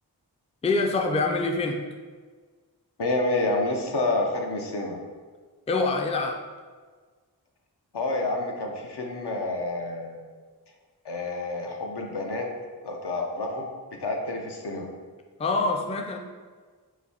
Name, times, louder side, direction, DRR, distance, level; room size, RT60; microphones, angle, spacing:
voice 1, 0.6-1.8 5.7-6.4 15.4-16.2, left 3 dB, 15° left, 3 dB, 0.3 m, -25 dB
voice 2, 3.0-5.0 7.9-10.2 11.0-12.5 12.8-14.9, left 2 dB, 75° left, 1 dB, 0.7 m, -29 dB
4.0 x 2.7 x 4.2 m, 1.5 s
wide cardioid pair, 55°, 40 cm